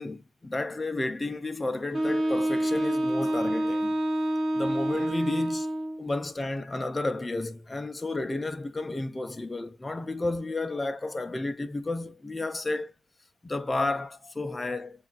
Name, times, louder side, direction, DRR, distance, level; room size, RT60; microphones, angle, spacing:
voice 1, 0.0-4.0 4.5-5.7 6.0-12.9 13.4-15.1, left 2 dB, 20° left, 0.5 m, -32 dB
Wind instrument woodwind instrument, 1.9-6.0, right 1 dB, 35° right, 1.2 m, -27 dB
7.1 x 2.5 x 2.4 m
cardioid pair, 105°, 0 cm